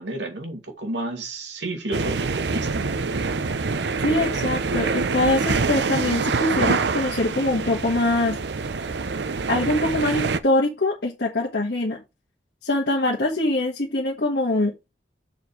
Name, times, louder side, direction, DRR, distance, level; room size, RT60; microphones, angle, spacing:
voice 1, 0.0-3.0, right 2 dB, 85° right, 2.4 m, -31 dB
sound 1, 1.9-10.4, right 4 dB, 70° right, 0.7 m, -25 dB
voice 2, 4.0-8.4 9.5-12.0 12.6-14.9, left 2 dB, 65° left, 1.5 m, -23 dB
6.9 x 4.5 x 4.8 m
head